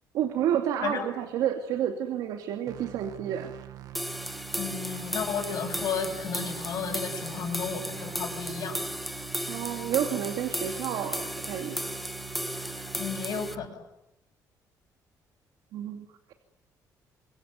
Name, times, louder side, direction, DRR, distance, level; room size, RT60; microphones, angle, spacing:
voice 1, 0.1-3.5 9.5-12.0 15.7-16.3, right 10 dB, 90° right, 5 dB, 2.6 m, -30 dB
sound 1, 2.7-13.7, right 14 dB, 70° right, 2.2 m, -44 dB
sound 2, 3.9-13.5, equal, ahead, 1.4 m, -35 dB
voice 2, 4.6-8.8 13.0-13.8, left 6 dB, 65° left, -4 dB, 7.1 m, -33 dB
26.5 x 22.0 x 9.5 m, 0.87 s
cardioid pair, 125°, 7 cm